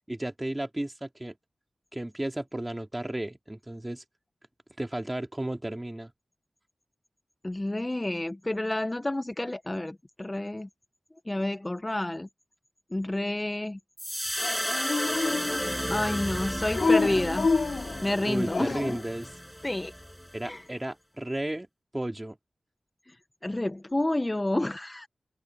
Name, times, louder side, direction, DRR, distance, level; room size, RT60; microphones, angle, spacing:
voice 1, 0.1-1.3 1.9-4.0 4.8-6.1 18.3-19.3 20.3-21.7 21.9-22.4, right 1 dB, 15° right, 2.7 m, -33 dB
voice 2, 7.4-10.7 11.3-12.3 12.9-13.8 15.9-17.5 18.0-19.0 19.6-19.9 20.4-20.6 23.1-23.2 23.4-25.1, left 1 dB, 20° left, 0.6 m, -29 dB
sound 1, 14.0-20.4, equal, ahead, 5.7 m, -33 dB
Dog, 14.4-15.9 16.7-19.1, left 4 dB, 65° left, 4.0 m, -28 dB
wide cardioid pair, 100°, 0 cm